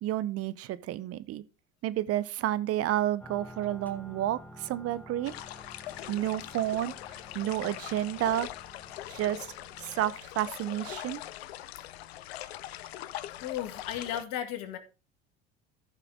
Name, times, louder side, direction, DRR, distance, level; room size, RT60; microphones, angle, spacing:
voice 1, 0.0-1.4 1.8-5.3 6.1-6.9 7.3-8.5 9.1-9.5 9.8-11.2, right 13 dB, 50° right, 0.8 m, -30 dB
sound 1, 3.2-10.1, equal, 5° left, 1.5 m, -51 dB
sound 2, 5.2-14.2, left 14 dB, 85° left, 0.6 m, -42 dB
voice 2, 13.4-14.8, left 10 dB, 65° left, 2.0 m, -35 dB
14.0 x 5.8 x 3.5 m
hypercardioid pair, 80°, 30 cm